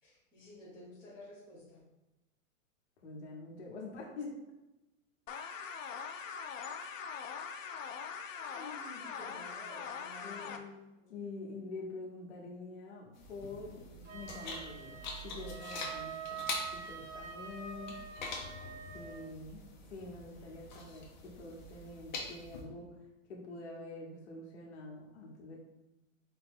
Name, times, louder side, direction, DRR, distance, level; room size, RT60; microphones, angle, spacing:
voice 1, 0.0-1.8 5.8-5.9 9.0-10.6 11.0-11.2 13.8-14.1, left 1 dB, 5° right, -14 dB, 0.7 m, -53 dB
voice 2, 3.0-4.3 8.5-9.0 10.2-10.8 11.1-13.9 14.1-18.0 18.9-22.9 23.3-25.6, left 3 dB, 55° left, -2 dB, 1.3 m, -46 dB
sound 1, 5.3-10.6, left 6 dB, 75° left, 0.6 m, -42 dB
sound 2, 13.1-22.6, left 3 dB, 35° left, 0.7 m, -45 dB
Wind instrument woodwind instrument, 14.0-19.2, right 6 dB, 75° right, 1.5 m, -45 dB
4.3 x 2.9 x 3.7 m, 0.97 s
supercardioid pair, 180°, 39 cm